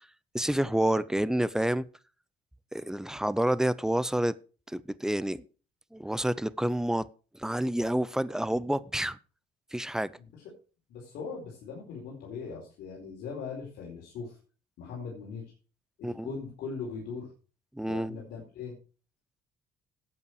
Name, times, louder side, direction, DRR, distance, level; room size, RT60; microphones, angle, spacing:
voice 1, 0.3-1.9 2.7-4.3 4.7-5.4 5.9-7.1 7.4-9.2 9.7-10.1 16.0-16.3 17.8-18.2, right 1 dB, 5° right, 0.6 m, -28 dB
voice 2, 10.9-14.4 14.8-15.4 16.0-17.3 17.9-18.8, left 5 dB, 80° left, 4.5 m, -40 dB
12.5 x 8.5 x 4.8 m
cardioid pair, 110°, 17 cm